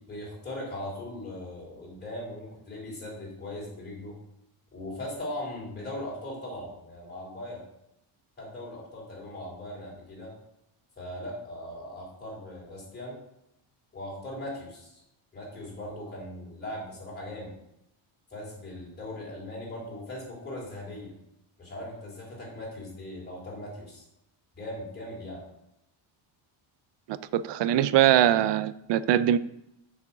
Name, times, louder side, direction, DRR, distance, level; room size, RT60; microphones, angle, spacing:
voice 1, 0.1-4.2 4.7-7.6 8.4-10.3 11.0-13.2 13.9-14.9 15.3-17.5 18.3-21.1 21.6-24.0 24.5-25.4, left 1 dB, 20° left, -5 dB, 4.1 m, -39 dB
voice 2, 27.1-29.4, right 11 dB, 60° right, 15 dB, 0.6 m, -22 dB
7.3 x 6.9 x 6.0 m, 0.81 s
cardioid pair, 155°, 50 cm